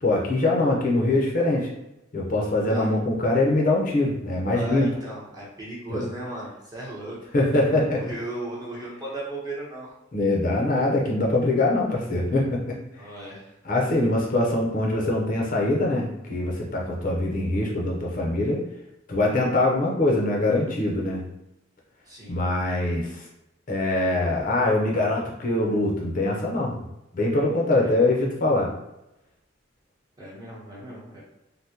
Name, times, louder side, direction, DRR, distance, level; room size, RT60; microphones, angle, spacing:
voice 1, 0.0-1.7 2.1-4.9 5.9-6.0 7.3-8.1 10.1-12.8 13.6-18.6 19.1-21.2 22.3-23.2 23.7-26.8 27.1-28.7, left 2 dB, 45° left, -2 dB, 0.6 m, -23 dB
voice 2, 2.6-2.9 4.5-7.2 7.9-9.9 13.0-13.5 22.1-22.4 27.8-28.1 30.2-31.2, right 1 dB, 20° right, -6 dB, 0.9 m, -36 dB
3.4 x 2.1 x 2.8 m, 0.90 s
head